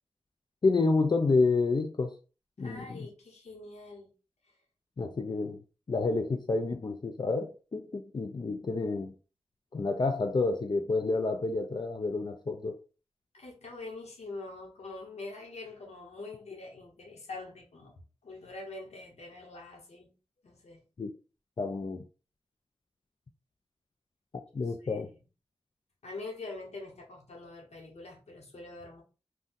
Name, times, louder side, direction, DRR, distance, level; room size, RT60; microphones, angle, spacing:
voice 1, 0.6-2.1 2.6-3.1 5.0-5.6 5.9-9.1 9.7-12.8 21.0-21.1 21.6-22.1 24.5-25.1, left 3 dB, 45° left, 0.4 m, -29 dB
voice 2, 2.6-4.1 13.3-17.9 18.2-20.1 20.4-20.8 24.6-25.2 26.0-29.0, left 3 dB, 90° left, 0.9 m, -44 dB
2.6 x 2.2 x 3.7 m
wide cardioid pair, 60°, 11 cm